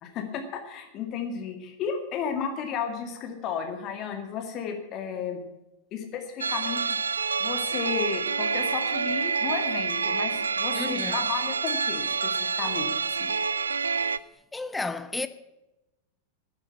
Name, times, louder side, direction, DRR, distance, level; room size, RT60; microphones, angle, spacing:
voice 1, 0.0-5.4 5.9-13.3, left 6 dB, 35° left, 2.1 m, -33 dB
sound 1, 6.4-14.2, right 5 dB, 75° right, 0.4 m, -27 dB
voice 2, 10.7-11.3 14.5-15.3, left 3 dB, 10° left, 0.8 m, -32 dB
11.5 x 9.6 x 8.3 m
figure-of-eight pair, 90°, 0 cm